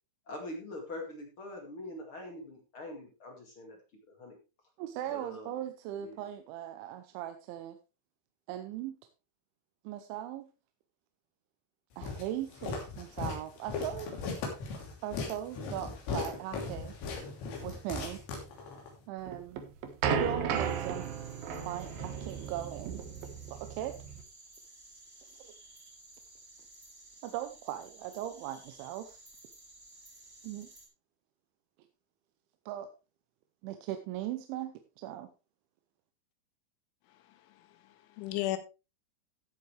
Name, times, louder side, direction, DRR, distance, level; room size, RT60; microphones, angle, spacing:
voice 1, 0.3-3.8 4.2-4.4 5.1-5.6 6.0-6.3, left 1 dB, 40° left, 2 dB, 2.0 m, -43 dB
voice 2, 4.8-7.8 8.5-9.0 9.8-10.5 12.0-14.1 15.0-17.3 17.6-18.2 19.1-19.6 20.2-21.2 21.6-23.0 23.5-24.0 25.2-25.5 27.2-29.2 30.4-30.7 32.7-32.9 33.6-35.3, right 12 dB, 80° right, 8 dB, 3.1 m, -39 dB
Walk footsteps, 12.0-18.9, left 4 dB, 70° left, 5.1 m, -38 dB
sound 1, 19.3-24.2, right 7 dB, 65° right, 2.6 m, -34 dB
sound 2, 20.5-30.9, right 2 dB, 15° right, 3.2 m, -55 dB
voice 3, 37.1-38.6, left 15 dB, 90° left, 10 dB, 3.5 m, -37 dB
15.0 x 8.4 x 3.2 m, 0.30 s
omnidirectional pair, 5.4 m